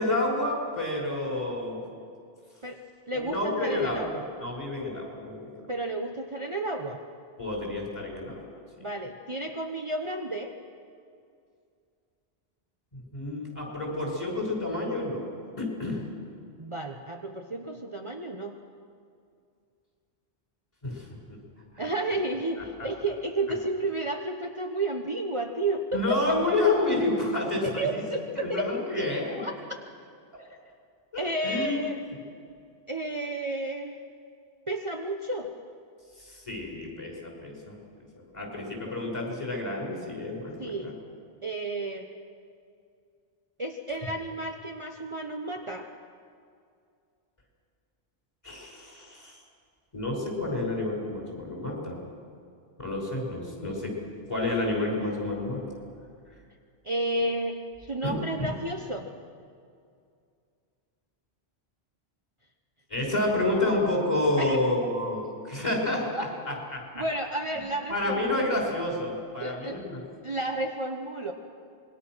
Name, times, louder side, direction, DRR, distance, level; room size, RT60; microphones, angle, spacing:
voice 1, 0.0-1.8 3.1-4.1 4.4-5.6 7.4-8.5 12.9-15.2 15.6-16.0 20.8-21.1 21.7-21.9 25.9-28.0 28.3-29.4 31.1-31.8 36.2-37.8 38.3-40.9 48.4-49.4 49.9-52.0 52.8-54.0 54.3-55.6 58.0-58.5 62.9-67.0 67.9-70.0, left 2 dB, 30° left, -1 dB, 5.9 m, -29 dB
voice 2, 2.6-4.2 5.7-7.0 8.8-10.6 16.6-18.6 21.8-26.6 27.8-29.8 31.2-32.0 32.9-34.0 34.7-35.5 40.6-40.9 41.4-42.1 43.6-45.9 53.6-53.7 56.8-59.1 64.4-64.6 66.2-66.3 66.9-68.6 69.4-69.8 70.2-71.3, right 2 dB, 30° right, 2 dB, 1.1 m, -32 dB
26.5 x 21.5 x 6.3 m, 2.3 s
omnidirectional pair, 1.1 m